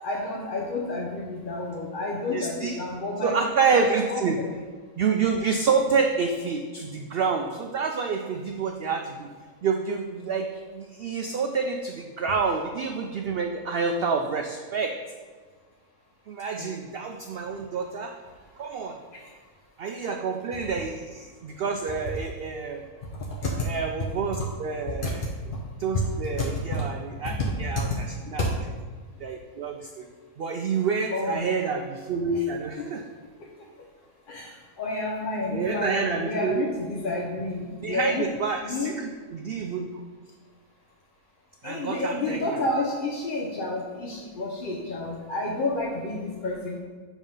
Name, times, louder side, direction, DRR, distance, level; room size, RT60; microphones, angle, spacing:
voice 1, 0.0-3.3 3.7-4.6 16.6-16.7 19.1-19.2 25.0-25.1 26.4-26.5 26.7-26.8 27.2-27.5 28.4-28.5 31.1-31.5 32.3-32.4 34.3-34.5 34.8-38.2 38.6-39.0 41.6-46.8, left 2 dB, 50° left, -1 dB, 0.7 m, -30 dB
voice 2, 2.3-2.8 3.2-4.4 5.0-9.3 9.6-14.9 16.3-18.1 18.6-19.0 19.8-22.9 23.6-25.3 25.8-28.5 29.2-30.1 30.4-33.0 35.5-36.6 37.8-39.9 41.6-42.6, right 5 dB, 85° right, 4 dB, 0.5 m, -28 dB
7.3 x 3.5 x 5.4 m, 1.5 s
omnidirectional pair, 1.5 m